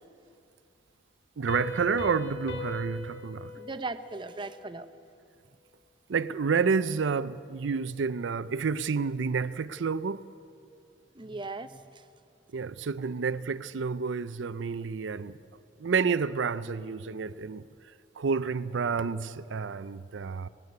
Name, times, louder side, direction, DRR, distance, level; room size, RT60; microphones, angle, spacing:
voice 1, 1.4-3.5 6.1-10.2 12.5-15.4 15.8-17.6 18.2-20.5, right 5 dB, 80° right, 0.5 m, -29 dB
Piano, 1.5-4.9, left 2 dB, 90° left, 2.3 m, -40 dB
voice 2, 3.5-4.9 11.1-12.0, right 3 dB, 25° right, 0.7 m, -38 dB
19.0 x 16.0 x 9.5 m
head